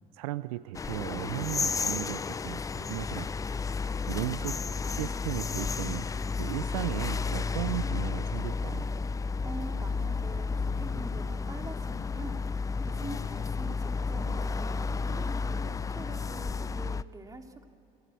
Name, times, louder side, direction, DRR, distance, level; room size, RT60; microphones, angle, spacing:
voice 1, 0.1-3.3 3.7-4.6 4.9-6.1 6.3-8.9, right 17 dB, 75° right, 16 dB, 0.5 m, -36 dB
sound 1, 0.7-17.0, left 4 dB, 20° left, 0.5 m, -32 dB
voice 2, 9.4-12.4 12.9-17.7, right 2 dB, 20° right, 4 dB, 2.5 m, -45 dB
27.0 x 13.0 x 8.4 m, 2.7 s
hypercardioid pair, 75°, 18 cm